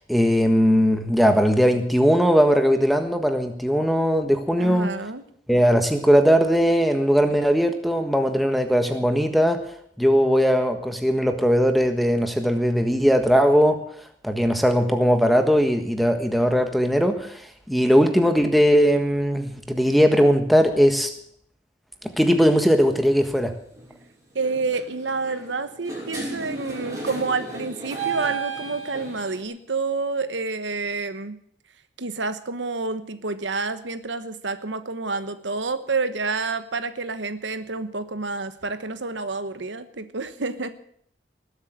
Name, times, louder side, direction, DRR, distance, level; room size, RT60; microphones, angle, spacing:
voice 1, 0.0-4.9 5.5-9.6 10.0-13.8 14.2-17.4 17.7-21.1 22.2-23.5, equal, ahead, 5 dB, 1.4 m, -19 dB
voice 2, 4.6-5.2 24.3-31.4 32.0-40.7, right 3 dB, 80° right, 11 dB, 1.2 m, -29 dB
sound 1, 22.5-22.8 23.7-24.0 24.3-29.4, right 4 dB, 20° right, 6.6 m, -34 dB
19.5 x 8.2 x 7.9 m, 0.66 s
head